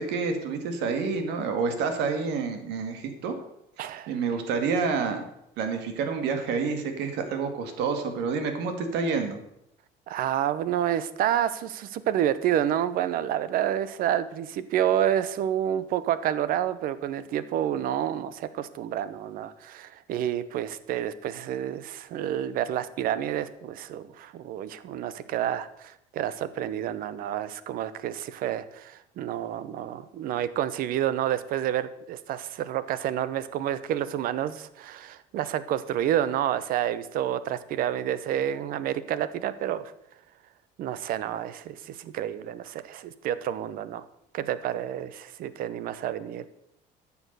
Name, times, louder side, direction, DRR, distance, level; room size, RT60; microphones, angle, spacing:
voice 1, 0.0-3.4 3.8-5.2 5.6-9.4, right 5 dB, 75° right, 6 dB, 2.1 m, -28 dB
voice 2, 3.8-4.1 10.1-39.9 40.8-44.0 44.3-46.5, right 11 dB, 55° right, 15 dB, 0.8 m, -29 dB
13.0 x 7.0 x 6.8 m, 0.81 s
cardioid pair, 165°, 18 cm